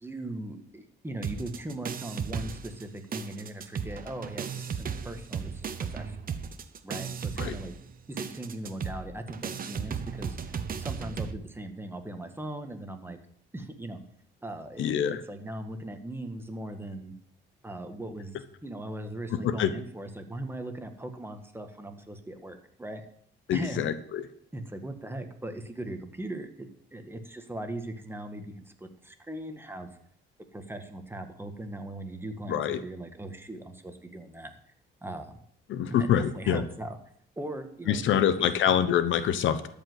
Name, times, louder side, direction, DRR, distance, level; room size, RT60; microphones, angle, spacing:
voice 1, 0.0-6.4 6.8-7.7 8.1-10.4 10.8-13.2 13.5-14.0 14.4-17.1 17.6-18.3 18.6-23.0 23.5-23.9 24.5-29.9 30.5-34.6 35.0-35.4 36.0-37.0 37.4-38.8, right 1 dB, 10° right, 6 dB, 1.7 m, -39 dB
sound 1, 1.2-2.9 3.1-11.3, right 6 dB, 45° right, 1.0 m, -35 dB
voice 2, 14.8-15.2 19.3-19.7 23.5-24.2 32.5-32.8 35.7-36.6 37.9-39.7, left 9 dB, 75° left, 12 dB, 1.0 m, -25 dB
13.0 x 5.3 x 7.9 m, 0.65 s
cardioid pair, 90°, 20 cm